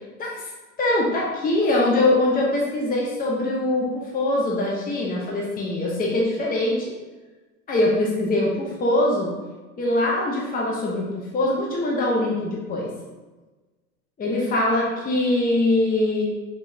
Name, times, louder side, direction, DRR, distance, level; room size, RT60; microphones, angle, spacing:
voice 1, 0.2-0.5 0.8-6.9 7.7-9.3 9.8-12.9 14.2-16.3, left 2 dB, 20° left, -3 dB, 1.0 m, -23 dB
5.3 x 3.3 x 2.8 m, 1.2 s
hypercardioid pair, 95°, 42 cm